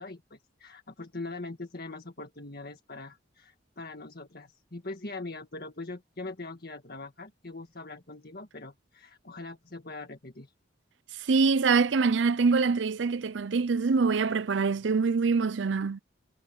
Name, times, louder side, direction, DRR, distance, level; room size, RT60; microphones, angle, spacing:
voice 1, 0.0-10.5, left 3 dB, 55° left, 1.8 m, -42 dB
voice 2, 11.3-16.0, right 4 dB, 85° right, 0.5 m, -24 dB
head